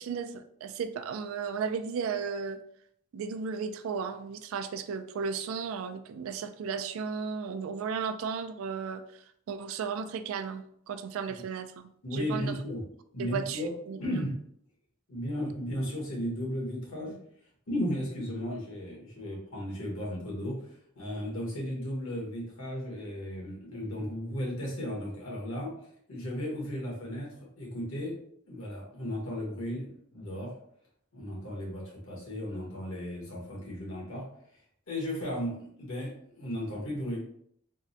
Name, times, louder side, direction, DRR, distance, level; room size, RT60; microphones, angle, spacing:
voice 1, 0.0-2.6 3.1-9.0 9.5-12.6 13.2-14.3, right 6 dB, 75° right, 10 dB, 0.3 m, -35 dB
voice 2, 12.0-12.8 13.1-13.7 14.0-14.5 15.1-17.1 17.7-25.7 26.1-28.1 28.5-30.5 31.1-34.2 34.9-37.2, equal, 75° left, -4 dB, 1.3 m, -35 dB
3.5 x 2.1 x 2.7 m, 0.67 s
head